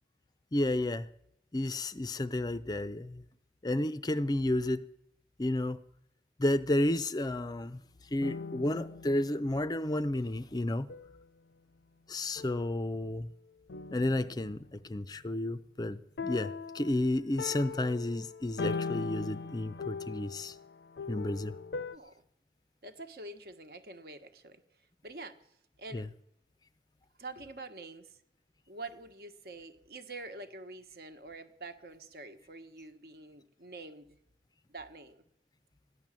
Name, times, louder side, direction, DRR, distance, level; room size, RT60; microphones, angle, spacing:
voice 1, 0.5-1.1 1.5-3.2 3.6-4.8 5.4-5.8 6.4-7.8 8.1-10.9 12.1-13.3 13.9-20.6 21.1-21.6 25.9-26.1, left 1 dB, 20° left, 14 dB, 0.5 m, -31 dB
sound 1, 8.2-10.0 10.9-11.2 12.4-13.1 13.7-14.9 16.2-22.0, left 4 dB, 70° left, 0.5 m, -40 dB
voice 2, 21.7-22.2 22.8-24.6 25.0-26.1 27.2-28.2 28.7-34.2 34.7-35.2, right 2 dB, 60° right, 9 dB, 1.3 m, -46 dB
14.5 x 10.5 x 7.5 m, 0.75 s
head